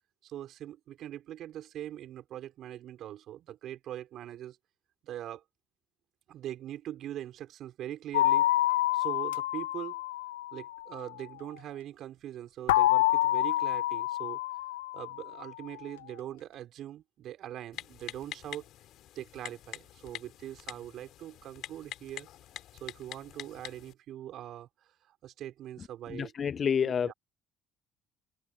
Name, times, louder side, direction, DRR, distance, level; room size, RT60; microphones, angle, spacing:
voice 1, 0.2-4.6 5.0-5.4 6.3-8.5 8.9-10.0 10.5-14.4 14.9-18.6 19.1-22.3 22.8-24.7 25.1-26.3 26.8-27.1, right 12 dB, 65° right, 6.4 m, -42 dB
sound 1, 8.1-11.0 12.7-15.5, left 15 dB, 90° left, 0.7 m, -28 dB
Typing, 17.7-23.9, left 13 dB, 65° left, 4.0 m, -46 dB
voice 2, 26.1-27.1, left 7 dB, 45° left, 0.4 m, -29 dB
hypercardioid pair, 60°, 0 cm